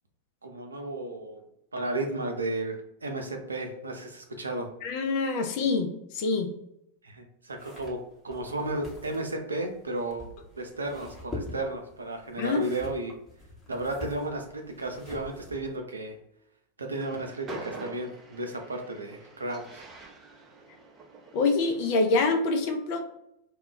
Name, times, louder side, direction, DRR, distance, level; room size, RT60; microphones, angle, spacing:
voice 1, 0.4-1.4 1.7-4.7 7.0-10.3 10.6-13.1 13.7-16.2 16.8-19.8, right 2 dB, 75° right, 4 dB, 0.5 m, -33 dB
voice 2, 4.8-6.5 12.4-12.6 21.3-23.0, left 3 dB, 45° left, 5 dB, 0.5 m, -26 dB
sound 1, 7.5-15.8, left 2 dB, 15° left, 0.9 m, -45 dB
Train, 16.8-22.1, right 3 dB, 25° right, 0.5 m, -45 dB
2.3 x 2.2 x 3.6 m, 0.78 s
figure-of-eight pair, 90°, 0 cm